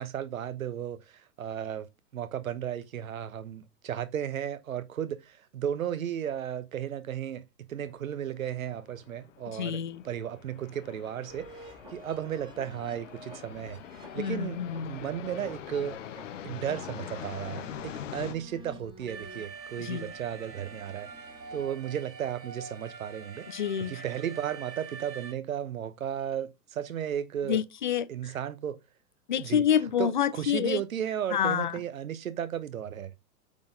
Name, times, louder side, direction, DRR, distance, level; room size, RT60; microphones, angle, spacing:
voice 1, 0.0-7.4 7.7-14.6 14.8-16.0 16.4-21.3 21.5-23.5 23.8-27.6 28.1-28.8 29.4-29.7 30.0-33.1, right 9 dB, 55° right, 1.0 m, -34 dB
sound 1, 7.7-18.3, left 10 dB, 50° left, 0.9 m, -44 dB
voice 2, 9.5-10.0 14.2-15.0 19.8-20.1 23.5-24.0 27.5-28.1 29.3-30.8 31.3-31.8, left 9 dB, 35° left, 0.4 m, -28 dB
sound 2, 11.3-22.3, right 1 dB, 10° right, 1.8 m, -51 dB
Alarm, 19.1-25.3, right 5 dB, 80° right, 1.1 m, -45 dB
8.7 x 4.0 x 3.8 m
figure-of-eight pair, 110°, 49 cm